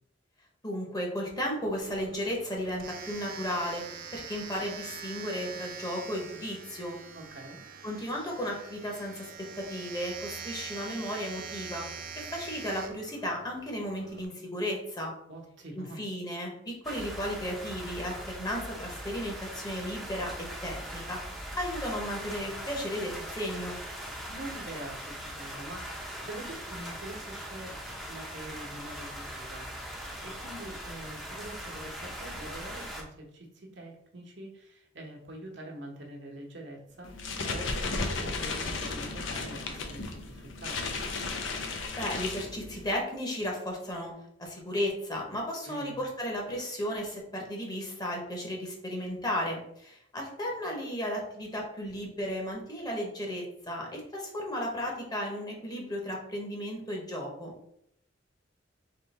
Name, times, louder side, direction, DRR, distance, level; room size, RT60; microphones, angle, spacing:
voice 1, 0.6-7.0 7.8-11.8 12.1-15.1 15.7-21.2 21.6-23.8 41.9-44.1 44.4-57.5, equal, 20° left, 0 dB, 1.0 m, -34 dB
Domestic sounds home sounds, 1.8-14.2, right 6 dB, 50° right, 0.4 m, -44 dB
voice 2, 7.1-7.6 15.3-16.0 24.3-27.8 28.1-37.1 37.4-41.0 45.6-45.9, right 1 dB, 65° right, 0 dB, 1.1 m, -45 dB
sound 1, 16.8-33.0, equal, ahead, 0.7 m, -40 dB
sound 2, 37.0-43.0, left 3 dB, 90° left, 0.7 m, -34 dB
3.8 x 3.1 x 4.2 m, 0.75 s
head